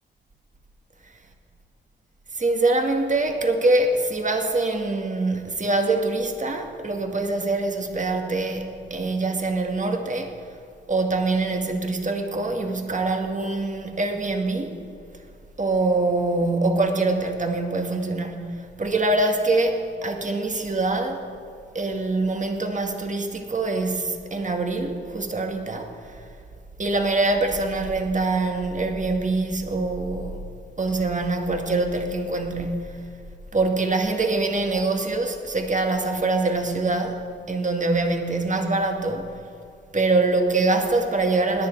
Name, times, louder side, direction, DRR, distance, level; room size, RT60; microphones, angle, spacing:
voice 1, 2.3-10.3 10.9-14.8 15.6-21.3 21.7-26.2 26.8-30.4 30.8-33.1 33.5-39.3 39.9-41.7, right 2 dB, 40° right, 2.0 m, -24 dB
17.5 x 10.5 x 4.7 m
cardioid pair, 50°, 20 cm